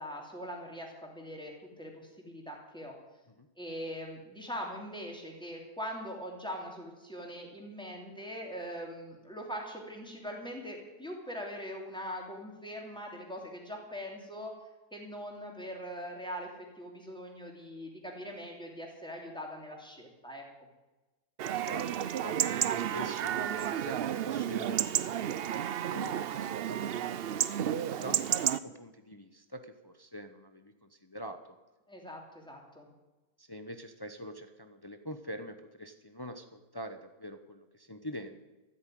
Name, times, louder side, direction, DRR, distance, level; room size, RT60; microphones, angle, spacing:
voice 1, 0.0-3.0 3.6-14.5 14.9-16.5 16.8-20.4 31.9-32.9, equal, 5° left, 0 dB, 3.1 m, -42 dB
Chatter / Livestock farm animals working animals / Chirp tweet, 21.4-28.6, right 10 dB, 85° right, 0.5 m, -31 dB
voice 2, 21.6-28.2 28.6-31.6 33.4-38.4, equal, 25° left, 7 dB, 0.5 m, -45 dB
13.5 x 8.7 x 9.2 m, 1.1 s
omnidirectional pair, 1.7 m